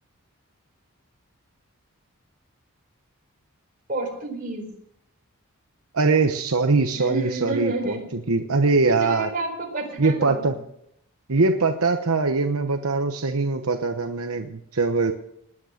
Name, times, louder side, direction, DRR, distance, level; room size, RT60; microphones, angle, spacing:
voice 1, 3.9-4.7 7.0-8.1 8.9-10.6, right 3 dB, 40° right, 1 dB, 4.6 m, -30 dB
voice 2, 5.9-9.3 10.0-10.6 11.3-15.1, right 3 dB, 75° right, 6 dB, 1.0 m, -22 dB
19.5 x 9.9 x 6.5 m, 0.76 s
head